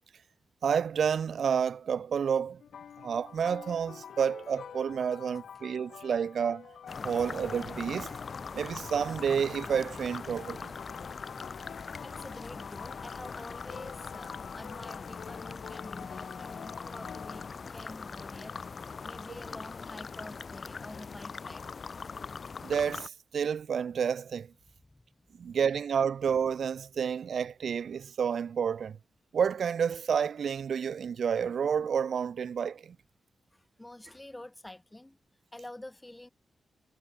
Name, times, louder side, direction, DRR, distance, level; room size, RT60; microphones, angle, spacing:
voice 1, 0.6-2.6 3.0-6.7 7.0-8.1 8.5-10.7 22.6-24.5 25.4-29.0 29.3-32.9, right 7 dB, 65° right, 0.9 m, -30 dB
sound 1, 2.6-17.5, left 8 dB, 80° left, 1.7 m, -48 dB
sound 2, 6.9-23.1, left 5 dB, 45° left, 1.0 m, -41 dB
voice 2, 12.0-21.6 25.3-25.5 33.5-35.2 35.5-36.3, left 1 dB, 10° left, 2.3 m, -48 dB
wide cardioid pair, 125°, 0 cm